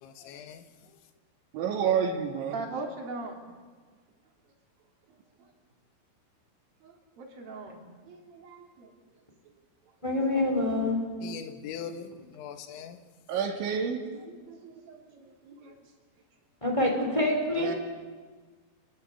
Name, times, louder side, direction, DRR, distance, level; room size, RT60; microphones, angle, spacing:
voice 1, 0.0-1.0 11.2-13.0, left 7 dB, 85° left, 7 dB, 3.8 m, -41 dB
voice 2, 1.5-2.6 13.3-14.1 17.6-17.8, right 7 dB, 80° right, 3 dB, 4.7 m, -28 dB
voice 3, 2.5-3.4 5.4-5.5 6.8-8.9 14.1-15.7, right 3 dB, 55° right, 1 dB, 4.4 m, -41 dB
voice 4, 10.0-11.0 16.6-17.7, left 1 dB, 5° left, 1 dB, 3.9 m, -26 dB
27.5 x 20.0 x 8.4 m, 1.5 s
omnidirectional pair, 5.3 m